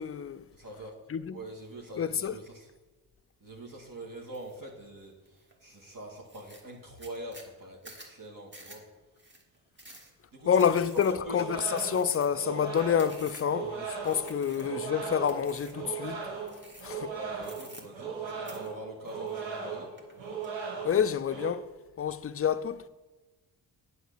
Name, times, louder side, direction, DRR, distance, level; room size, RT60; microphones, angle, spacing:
voice 1, 0.0-0.4 1.1-1.4 2.0-2.3 10.5-16.2 16.8-17.1 20.8-21.7 22.0-22.8, left 8 dB, 30° left, 0.5 m, -28 dB
voice 2, 0.5-1.0 1.3-2.7 3.4-8.8 9.8-9.9 10.3-11.5 14.5-14.7 17.1-19.9, right 1 dB, 45° right, 2.1 m, -44 dB
sound 1, 4.3-4.6 5.0-5.5 5.9-6.0 6.2-13.6 14.0-14.9 15.3-15.9 16.5-17.1 17.4-18.2 18.5-19.6 20.0-20.5, right 1 dB, 25° right, 2.1 m, -51 dB
sound 2, 11.2-21.5, right 5 dB, 75° right, 1.5 m, -38 dB
8.0 x 4.8 x 6.8 m
supercardioid pair, 40°, 45 cm